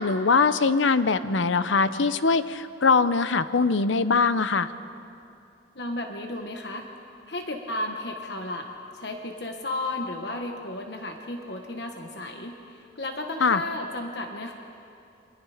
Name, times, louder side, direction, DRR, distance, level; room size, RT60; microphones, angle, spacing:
voice 1, 0.0-4.7 13.4-13.6, left 4 dB, 85° left, 13 dB, 0.8 m, -22 dB
voice 2, 5.7-6.9 7.3-8.7 8.9-14.5, left 2 dB, 60° left, 3 dB, 1.3 m, -33 dB
29.5 x 23.5 x 5.1 m, 2.6 s
head